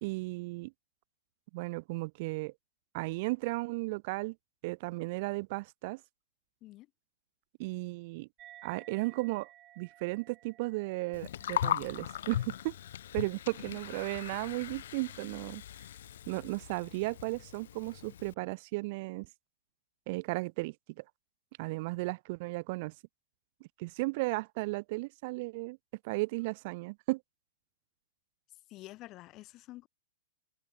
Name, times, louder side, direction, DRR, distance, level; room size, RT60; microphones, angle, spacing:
voice 1, 0.0-0.7 1.5-2.5 2.9-4.3 4.6-6.0 7.6-8.3 8.6-9.5 9.8-12.7 13.1-15.6 16.3-19.3 20.1-21.0 21.6-22.9 23.8-25.8 26.0-27.2, right 24 dB, 50° right, 0.5 m, -35 dB
sound 1, 8.4-15.3, right 14 dB, 30° right, 4.0 m, -58 dB
Gurgling, 11.1-18.3, left 11 dB, 70° left, 0.6 m, -38 dB
voice 2, 28.7-29.9, left 17 dB, 35° left, 3.6 m, -48 dB
hypercardioid pair, 130°, 0 cm